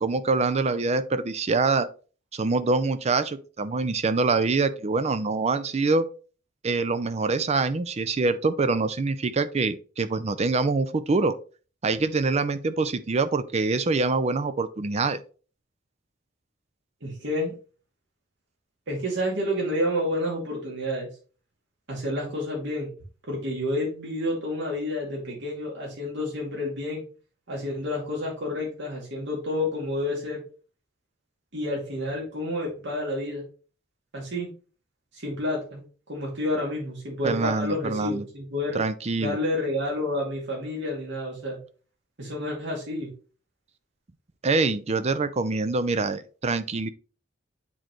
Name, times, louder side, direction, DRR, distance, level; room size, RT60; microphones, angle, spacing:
voice 1, 0.0-1.9 2.3-6.1 6.6-11.4 11.8-15.2 37.2-38.3 38.7-39.4 44.4-46.9, right 3 dB, 35° right, 11 dB, 0.5 m, -25 dB
voice 2, 17.0-17.5 18.9-21.1 21.9-22.9 23.3-27.0 27.5-30.4 31.5-33.4 34.1-34.5 35.1-35.8 36.1-38.8 39.2-41.6 42.2-43.1, left 1 dB, 65° right, -2 dB, 2.2 m, -29 dB
8.5 x 3.8 x 3.1 m, 0.37 s
head